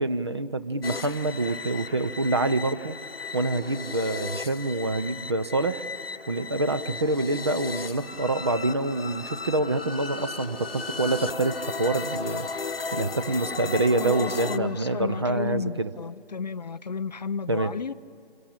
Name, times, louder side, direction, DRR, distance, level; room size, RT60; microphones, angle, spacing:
voice 1, 0.0-2.9 3.3-5.8 6.3-12.5 12.9-15.9 17.5-17.7, right 2 dB, 30° right, 0.6 m, -26 dB
sound 1, 0.8-14.6, left 4 dB, 80° left, 1.0 m, -35 dB
sound 2, 7.8-15.1, left 3 dB, ahead, 1.4 m, -47 dB
voice 2, 14.0-17.9, left 5 dB, 45° left, 0.6 m, -32 dB
27.5 x 23.5 x 8.7 m
figure-of-eight pair, 155°, 29 cm